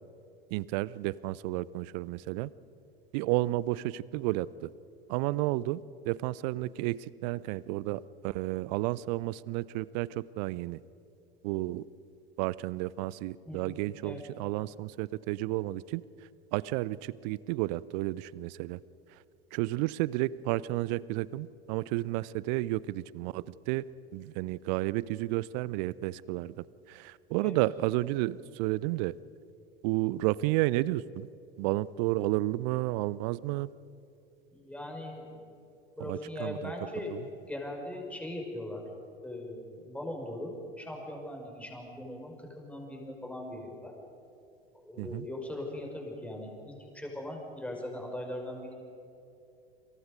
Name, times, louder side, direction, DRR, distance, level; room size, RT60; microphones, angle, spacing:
voice 1, 0.5-2.5 3.1-4.7 5.1-10.8 11.4-11.8 12.4-16.0 16.5-18.8 19.5-23.8 24.1-26.5 26.9-29.1 29.8-31.3 31.6-33.7 36.1-36.7 37.1-37.2 45.0-45.3, right 18 dB, 45° right, 21 dB, 0.7 m, -32 dB
voice 2, 34.5-35.5 36.0-37.2 37.4-38.8 39.2-44.0 44.7-48.7, left 1 dB, 5° left, 1 dB, 5.5 m, -40 dB
29.5 x 27.0 x 5.3 m, 2.7 s
figure-of-eight pair, 80°, 30 cm